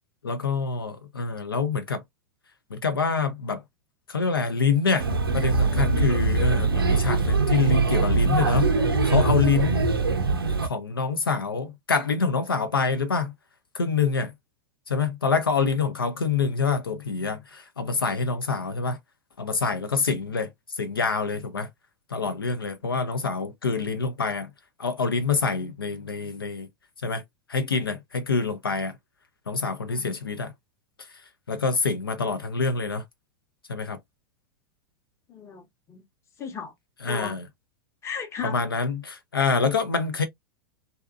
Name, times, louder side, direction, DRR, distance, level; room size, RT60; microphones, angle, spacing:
voice 1, 0.2-2.0 2.7-3.6 4.1-5.1 5.3-8.7 9.0-9.9 10.6-13.3 13.7-14.3 14.9-19.0 19.4-20.5 20.8-21.7 22.1-24.5 24.8-26.7 27.0-27.2 27.5-28.9 29.5-30.5 31.5-33.0 33.7-34.0 37.0-37.4 38.4-40.3, left 5 dB, 80° left, 0.5 m, -26 dB
Male speech man speaking / Child speech kid speaking / Chatter, 5.0-10.7, right 4 dB, 80° right, 0.6 m, -22 dB
voice 2, 29.9-30.2 35.3-36.0 36.4-36.7 37.1-37.4 38.0-38.6, left 6 dB, 25° left, 0.8 m, -36 dB
2.6 x 2.2 x 2.4 m
figure-of-eight pair, 90°, 12 cm